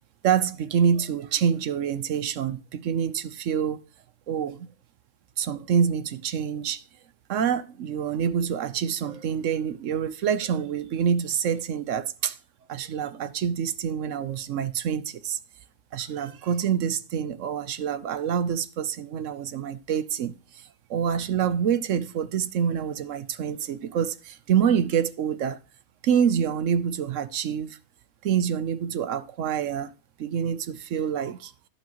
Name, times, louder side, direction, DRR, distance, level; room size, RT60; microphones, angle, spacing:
voice 1, 0.2-3.8 4.3-4.7 5.4-6.8 7.3-12.4 12.7-15.4 15.9-20.3 20.9-25.6 26.0-27.8 28.2-29.9 30.2-31.5, right 8 dB, 65° right, 1.0 m, -26 dB
16.5 x 6.0 x 3.0 m
omnidirectional pair, 1.5 m